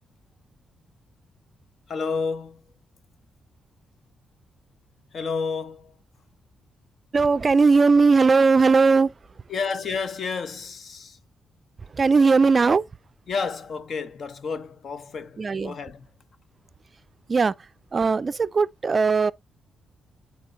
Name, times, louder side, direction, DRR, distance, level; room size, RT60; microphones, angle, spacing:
voice 1, 1.9-2.6 5.1-6.0 9.5-11.2 13.3-16.1, left 5 dB, 55° left, 0.9 m, -30 dB
voice 2, 7.1-9.1 11.9-12.9 15.4-15.8 17.3-19.3, right 4 dB, 35° right, 0.4 m, -19 dB
11.0 x 4.5 x 2.6 m
cardioid pair, 105°, 0 cm